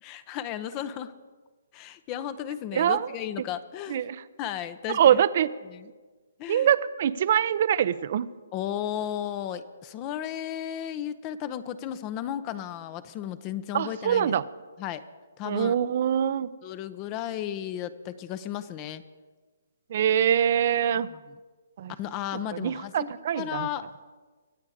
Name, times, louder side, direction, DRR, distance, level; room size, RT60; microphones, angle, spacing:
voice 1, 0.0-1.1 1.7-4.0 4.4-5.2 5.7-5.9 6.4-6.7 8.5-14.3 14.8-15.0 15.4-15.7 16.6-19.0 21.0-21.4 22.0-23.1 23.3-23.9, left 10 dB, 30° left, 14 dB, 0.7 m, -34 dB
voice 2, 2.7-3.1 3.9-4.2 4.9-5.5 6.5-8.3 13.7-14.4 15.4-16.5 19.9-21.1 21.8-21.9 22.3-23.7, right 9 dB, 50° right, 17 dB, 0.6 m, -24 dB
23.5 x 8.4 x 5.0 m, 1.4 s
hypercardioid pair, 145°, 0 cm